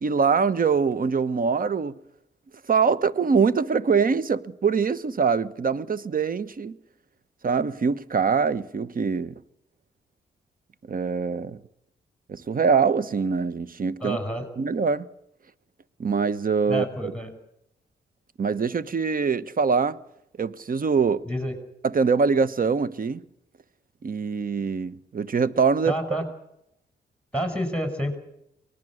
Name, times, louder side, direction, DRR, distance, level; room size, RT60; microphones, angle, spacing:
voice 1, 0.0-1.9 2.7-6.8 7.4-9.4 10.9-11.6 12.3-14.2 14.6-15.1 16.0-17.1 18.4-20.0 20.4-21.2 21.8-23.2 24.0-25.9, right 5 dB, 50° right, 1.2 m, -23 dB
voice 2, 14.0-14.5 16.7-17.3 21.2-21.5 25.9-26.3 27.3-28.2, equal, 5° left, 6.5 m, -28 dB
24.0 x 20.0 x 6.5 m
supercardioid pair, 50°, 19 cm